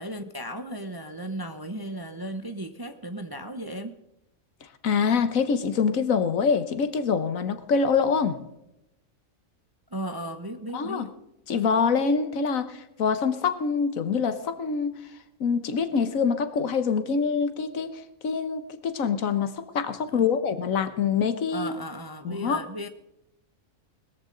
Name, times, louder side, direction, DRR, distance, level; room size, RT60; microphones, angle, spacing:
voice 1, 0.0-4.0 9.9-11.2 20.1-20.3 21.5-22.9, right 1 dB, 25° right, 0.6 m, -35 dB
voice 2, 4.8-8.4 10.7-11.1 11.5-14.9 15.4-21.7 22.2-22.6, left 6 dB, 75° left, 1.5 m, -25 dB
20.0 x 14.0 x 3.9 m
omnidirectional pair, 1.4 m